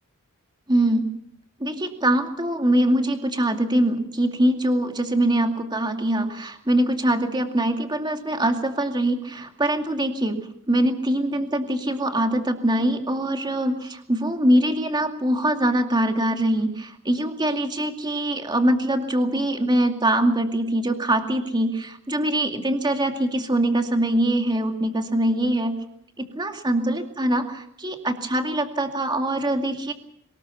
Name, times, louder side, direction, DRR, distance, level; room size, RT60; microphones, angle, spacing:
voice 1, 0.7-1.1 1.6-25.8 26.2-29.9, right 1 dB, 20° right, 5 dB, 2.4 m, -23 dB
23.5 x 20.0 x 7.1 m, 0.70 s
head